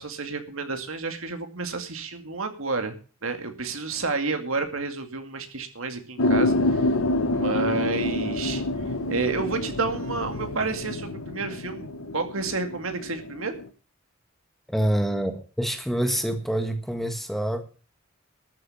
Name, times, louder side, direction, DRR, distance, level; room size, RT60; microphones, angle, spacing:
voice 1, 0.0-3.0 3.2-6.9 7.3-8.6 9.1-13.6, right 4 dB, 80° right, 6 dB, 2.3 m, -30 dB
sound 1, 6.2-13.7, left 2 dB, 85° left, 1.0 m, -27 dB
voice 2, 14.7-17.6, right 1 dB, ahead, 6 dB, 1.5 m, -26 dB
13.5 x 7.9 x 7.2 m, 0.38 s
head